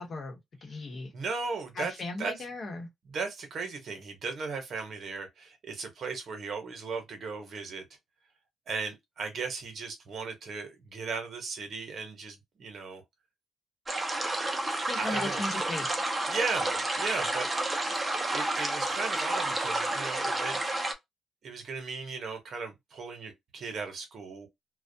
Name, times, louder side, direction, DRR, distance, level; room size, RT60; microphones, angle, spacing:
voice 1, 0.0-1.1 1.7-2.9 14.9-16.0, left 2 dB, 50° left, 0.9 m, -37 dB
voice 2, 1.1-1.9 2.2-2.3 3.1-7.8 8.7-13.0 14.6-15.4 16.3-17.5 18.0-20.7 21.4-24.5, right 4 dB, 55° right, 0.9 m, -36 dB
Calm Stream In Forest, 13.9-20.9, right 2 dB, 20° right, 0.6 m, -30 dB
2.3 x 2.1 x 2.7 m
cardioid pair, 90°, 0 cm